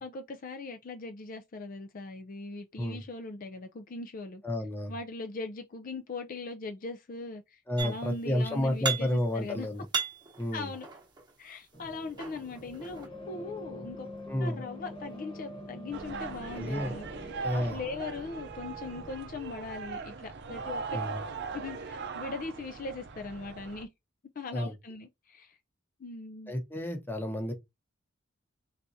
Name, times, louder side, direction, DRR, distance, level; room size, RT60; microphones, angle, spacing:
voice 1, 0.0-4.4 4.9-9.7 10.5-10.9 11.4-14.1 14.4-17.1 17.5-21.0 21.5-23.9 24.4-25.6 26.0-26.5, left 3 dB, 45° left, 0.4 m, -40 dB
voice 2, 4.4-4.9 7.7-9.8 10.4-10.7 14.3-14.6 16.6-16.9 17.4-17.8 20.9-21.2 24.5-24.7 26.5-27.5, left 1 dB, 10° left, 0.8 m, -31 dB
sound 1, 7.8-8.3 8.6-9.4 9.7-11.3 11.9-13.1, right 6 dB, 20° right, 1.0 m, -36 dB
sound 2, 11.7-19.1, left 1 dB, 25° left, 1.2 m, -45 dB
sound 3, 15.9-23.8, right 5 dB, 55° right, 0.5 m, -40 dB
4.0 x 3.4 x 2.7 m
head